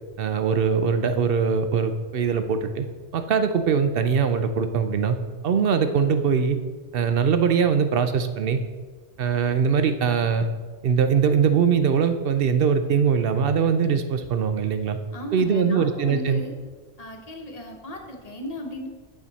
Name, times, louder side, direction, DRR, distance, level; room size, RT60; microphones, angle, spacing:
voice 1, 0.2-2.9 3.1-5.2 5.4-6.6 6.9-8.6 9.2-10.5 10.8-15.0 15.3-16.4, right 6 dB, 65° right, 9 dB, 0.8 m, -22 dB
voice 2, 15.1-16.6 17.0-18.9, equal, 40° left, 1 dB, 1.2 m, -36 dB
8.7 x 6.3 x 4.1 m, 1.4 s
omnidirectional pair, 1.1 m